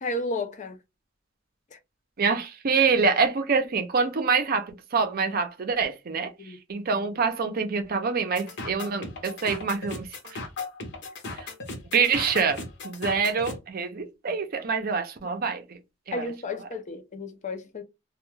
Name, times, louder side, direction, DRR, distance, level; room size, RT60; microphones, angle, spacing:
voice 1, 0.0-0.8 1.7-1.8 6.4-6.6 16.1-17.8, left 2 dB, 40° left, 0.4 m, -32 dB
voice 2, 2.2-10.4 11.4-11.5 11.9-15.8 16.1-16.2 16.6-16.7, right 5 dB, 50° right, 0.5 m, -26 dB
sound 1, 8.4-13.6, left 3 dB, 60° left, 0.8 m, -37 dB
2.2 x 2.2 x 3.1 m
head